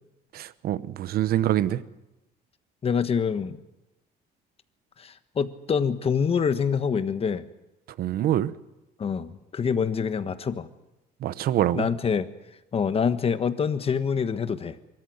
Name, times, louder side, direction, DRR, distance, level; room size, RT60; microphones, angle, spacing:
voice 1, 0.3-1.8 8.0-8.5 11.2-11.9, right 12 dB, 65° right, 0.9 m, -25 dB
voice 2, 2.8-3.6 5.0-7.4 9.0-10.7 11.7-12.3 12.7-14.8, left 6 dB, 35° left, 1.3 m, -26 dB
23.5 x 13.5 x 9.5 m
cardioid pair, 110°, 17 cm